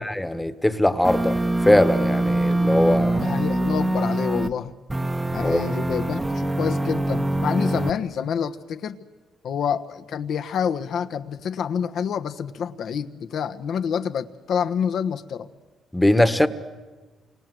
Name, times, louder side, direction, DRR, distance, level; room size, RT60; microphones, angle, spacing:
voice 1, 0.0-3.2 5.4-5.6 15.9-16.5, left 1 dB, 10° left, 1.4 m, -20 dB
sound 1, 1.0-4.5 4.9-7.9, right 1 dB, 15° right, 1.1 m, -24 dB
voice 2, 3.2-4.7 5.3-9.0 9.4-15.5, left 7 dB, 70° left, 1.2 m, -27 dB
28.5 x 26.5 x 7.8 m
cardioid pair, 90°, 0 cm